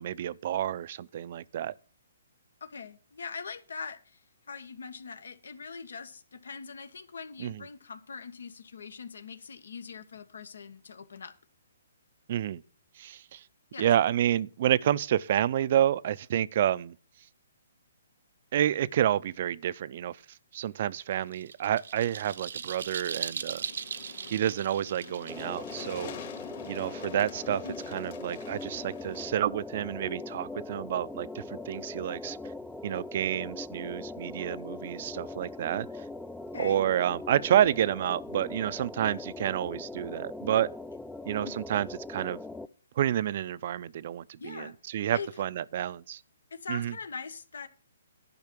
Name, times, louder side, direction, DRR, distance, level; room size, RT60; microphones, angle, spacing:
voice 1, 0.0-1.7 7.4-7.6 12.3-12.6 13.0-13.4 13.8-17.0 18.5-20.2 20.5-23.6 24.3-26.1 26.7-32.4 32.8-36.0 36.6-40.7 41.3-42.4 43.0-46.2 46.7-46.9, right 11 dB, 50° right, 0.5 m, -29 dB
voice 2, 2.6-4.2 4.5-11.3 13.7-13.9 27.6-27.8 36.5-36.8 41.4-41.6 44.4-44.7 45.1-45.3 46.5-47.7, left 5 dB, 80° left, 1.4 m, -42 dB
sound 1, 21.0-26.8, right 6 dB, 70° right, 0.8 m, -39 dB
sound 2, 23.6-29.3, left 8 dB, 45° left, 2.2 m, -46 dB
sound 3, 25.3-42.7, left 2 dB, 5° left, 0.4 m, -41 dB
11.0 x 5.6 x 7.5 m
hypercardioid pair, 150°, 0 cm